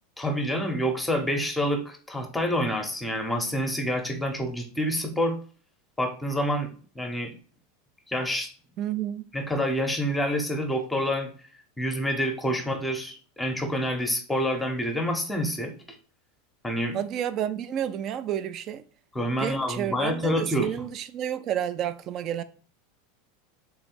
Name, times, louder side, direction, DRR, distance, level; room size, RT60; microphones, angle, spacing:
voice 1, 0.2-5.4 6.0-6.7 6.9-7.3 8.1-8.5 9.3-11.3 11.8-15.7 16.6-17.0 19.1-20.7, equal, 5° left, 0.8 m, -27 dB
voice 2, 8.8-9.3 16.9-18.8 19.4-22.4, right 10 dB, 40° right, 0.4 m, -30 dB
3.6 x 3.0 x 4.5 m
supercardioid pair, 130°, 0 cm